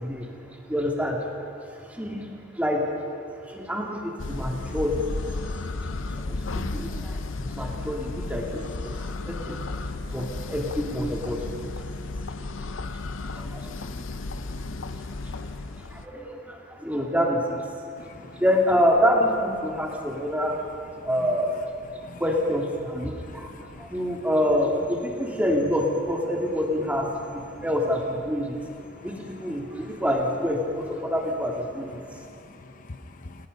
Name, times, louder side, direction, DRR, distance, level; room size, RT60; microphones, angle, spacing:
voice 1, 0.0-21.7 22.2-28.6 29.0-32.2, equal, 10° right, 0 dB, 2.7 m, -28 dB
sound 1, 4.2-16.0, left 3 dB, 80° left, 0.7 m, -33 dB
voice 2, 18.0-18.4 21.0-21.1 21.9-22.2 23.1-23.9 27.5-27.6 28.9-29.3 32.0-33.5, left 2 dB, 45° left, 8 dB, 0.8 m, -46 dB
29.0 x 18.0 x 5.4 m, 2.6 s
head